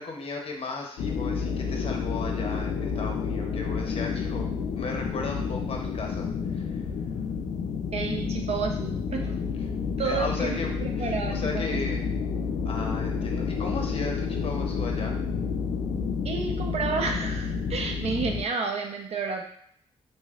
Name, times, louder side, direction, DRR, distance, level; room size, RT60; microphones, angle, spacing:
voice 1, 0.0-4.5 4.8-6.8 10.0-12.1 12.6-15.2, left 3 dB, 50° left, 1 dB, 0.7 m, -35 dB
sound 1, 1.0-18.5, left 5 dB, 80° left, 0.4 m, -30 dB
voice 2, 7.9-9.4 10.0-12.0 16.2-19.4, right 5 dB, 60° right, 2 dB, 0.6 m, -31 dB
3.1 x 2.7 x 2.4 m, 0.64 s
cardioid pair, 60°, 12 cm